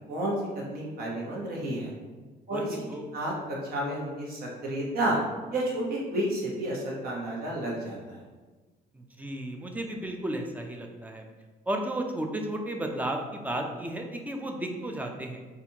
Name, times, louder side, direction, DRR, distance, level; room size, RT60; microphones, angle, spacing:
voice 1, 0.1-1.9 2.5-2.8 3.1-5.2 5.5-8.2, right 1 dB, 60° right, -4 dB, 1.1 m, -31 dB
voice 2, 2.5-3.0 8.9-11.2 11.7-15.4, right 1 dB, 10° right, 3 dB, 0.4 m, -33 dB
4.1 x 2.5 x 2.8 m, 1.3 s
cardioid pair, 110°, 17 cm